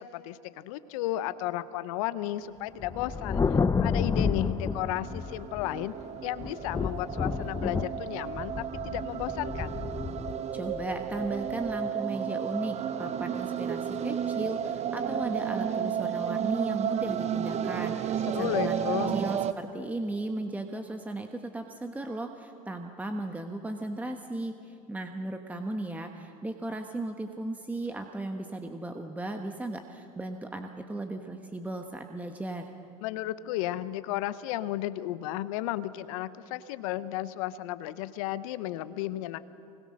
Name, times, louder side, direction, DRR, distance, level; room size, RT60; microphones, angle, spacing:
voice 1, 0.0-3.4 3.8-5.9 6.2-8.5 8.8-9.8 18.3-19.2 33.0-39.4, left 14 dB, 70° left, 15 dB, 0.8 m, -33 dB
Thunder, 2.8-5.9 6.4-11.7, left 5 dB, 20° left, 0.7 m, -30 dB
sound 1, 4.0-19.5, right 8 dB, 35° right, 0.9 m, -33 dB
voice 2, 10.5-32.7, right 2 dB, 10° right, 5 dB, 1.3 m, -36 dB
24.5 x 21.0 x 6.5 m, 2.8 s
hypercardioid pair, 80°, 18 cm